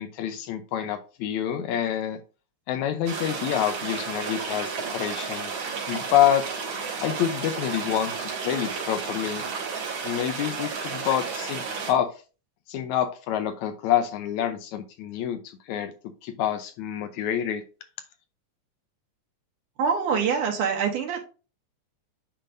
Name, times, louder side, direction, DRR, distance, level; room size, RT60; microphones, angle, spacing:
voice 1, 0.0-2.2 2.7-5.5 5.9-6.5 7.0-9.4 10.0-12.1 12.7-15.4 15.7-15.9 16.2-17.6, left 10 dB, 80° left, 8 dB, 2.1 m, -27 dB
sound 1, 3.1-11.9, right 5 dB, 65° right, 2.9 m, -32 dB
voice 2, 19.8-21.2, right 6 dB, 80° right, 1 dB, 2.9 m, -24 dB
10.0 x 3.6 x 2.6 m, 0.34 s
omnidirectional pair, 3.5 m